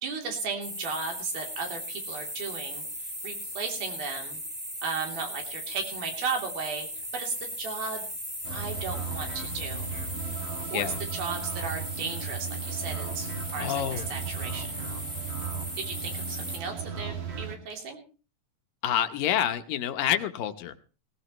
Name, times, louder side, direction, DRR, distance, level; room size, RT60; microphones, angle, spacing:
voice 1, 0.0-2.8 3.2-4.4 4.8-6.9 7.1-8.1 8.5-9.9 10.7-10.9 11.1-14.8 15.8-18.0, right 5 dB, 75° right, 2 dB, 4.9 m, -35 dB
Steam Leaking, 0.6-16.6, equal, 5° right, 2.8 m, -37 dB
sound 1, 8.4-17.6, right 6 dB, 45° right, 3.0 m, -36 dB
voice 2, 13.6-14.1 18.8-20.7, left 10 dB, 75° left, 9 dB, 2.5 m, -27 dB
18.5 x 18.0 x 3.0 m, 0.37 s
omnidirectional pair, 4.2 m